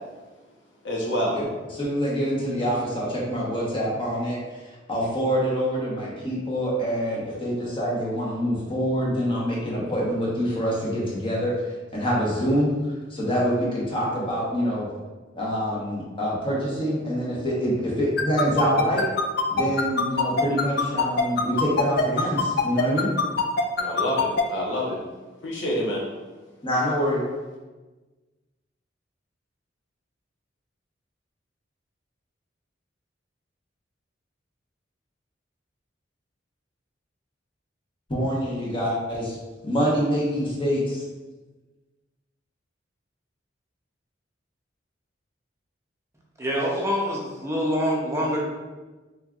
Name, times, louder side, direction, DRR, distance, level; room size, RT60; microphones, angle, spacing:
voice 1, 0.8-1.4 23.8-25.0 25.4-26.0, equal, 75° left, -3 dB, 1.0 m, -27 dB
voice 2, 1.7-4.4 4.9-11.5 11.9-12.7 13.1-14.9 15.4-19.0 19.5-23.1 26.6-27.2 38.1-39.4 39.6-41.0, equal, 30° left, -5 dB, 1.1 m, -25 dB
sound 1, 18.2-24.4, left 5 dB, 55° left, 0.4 m, -22 dB
voice 3, 46.4-48.4, equal, 15° right, -3 dB, 0.7 m, -25 dB
4.4 x 3.4 x 2.4 m, 1.2 s
head